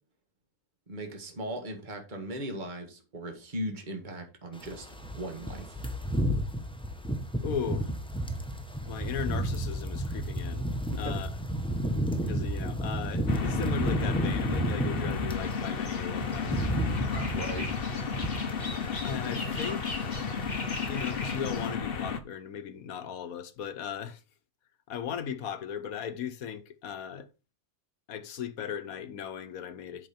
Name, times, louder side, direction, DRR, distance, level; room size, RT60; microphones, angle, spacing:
voice 1, 0.9-4.9 5.2-5.8 10.9-11.2 17.2-17.7, right 1 dB, 35° right, 1.9 m, -38 dB
sound 1, 4.6-15.5 15.9-19.3 19.6-19.8 20.1-21.0 21.2-21.4, right 1 dB, 5° left, 1.1 m, -32 dB
voice 2, 7.4-7.9 8.8-10.7 10.9-11.4 12.3-16.7 19.0-20.1 20.9-24.2 24.9-27.3 28.1-30.1, left 8 dB, 80° left, 1.3 m, -37 dB
sound 2, 13.3-22.2, left 5 dB, 45° left, 1.0 m, -33 dB
sound 3, 15.3-21.7, left 2 dB, 30° left, 2.0 m, -42 dB
8.5 x 6.1 x 4.3 m
omnidirectional pair, 1.5 m